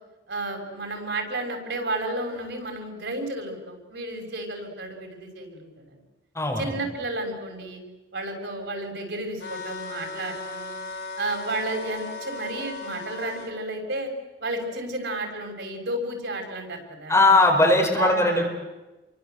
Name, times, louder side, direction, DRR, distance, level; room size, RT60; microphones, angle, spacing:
voice 1, 0.3-6.0 6.6-7.8 8.1-10.8 11.2-14.1 14.4-17.1 17.6-18.5, right 2 dB, 90° right, 3 dB, 6.4 m, -32 dB
voice 2, 6.3-6.8 17.1-18.5, left 2 dB, 15° left, 1 dB, 4.9 m, -19 dB
sound 1, 9.4-13.5, left 3 dB, 80° left, 5.4 m, -37 dB
28.5 x 24.0 x 8.1 m, 1.1 s
head